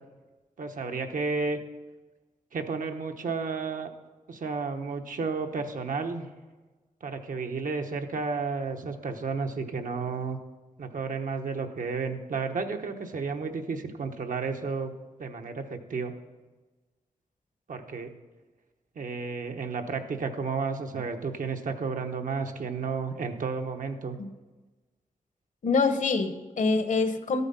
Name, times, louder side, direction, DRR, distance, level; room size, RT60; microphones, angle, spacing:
voice 1, 0.6-1.6 2.5-3.9 4.3-6.3 7.0-10.4 10.8-14.9 15.2-16.1 17.7-18.1 18.9-24.2, right 4 dB, 75° right, 5 dB, 1.1 m, -32 dB
voice 2, 25.6-27.4, left 4 dB, 65° left, 9 dB, 1.0 m, -25 dB
13.5 x 8.1 x 5.5 m, 1.2 s
wide cardioid pair, 120°, 14 cm